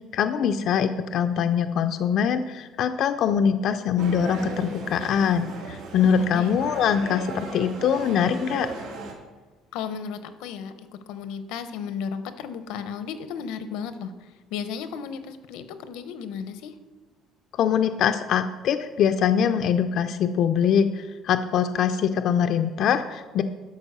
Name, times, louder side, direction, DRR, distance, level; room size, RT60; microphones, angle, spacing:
voice 1, 0.1-8.7 17.5-23.4, left 8 dB, 45° left, 8 dB, 0.4 m, -23 dB
sound 1, 4.0-9.1, right 3 dB, 85° right, 2.4 m, -37 dB
voice 2, 6.0-6.6 9.7-16.7, left 7 dB, 85° left, 11 dB, 0.8 m, -34 dB
11.5 x 4.7 x 6.7 m, 1.3 s
cardioid pair, 175°, 0 cm